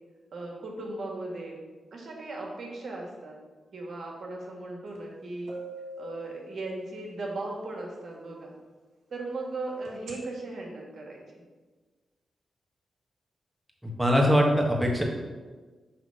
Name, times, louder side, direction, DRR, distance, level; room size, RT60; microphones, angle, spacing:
voice 1, 0.3-1.6 1.9-3.4 3.7-5.5 6.0-8.6 9.1-11.4, right 2 dB, 60° right, 0 dB, 1.5 m, -37 dB
sound 1, 5.0-5.1 5.5-7.2 9.9-10.1, right 1 dB, 85° right, 1.4 m, -42 dB
voice 2, 13.8-15.0, equal, 10° right, 0 dB, 1.4 m, -22 dB
5.8 x 3.2 x 5.5 m, 1.4 s
cardioid pair, 55°, 0 cm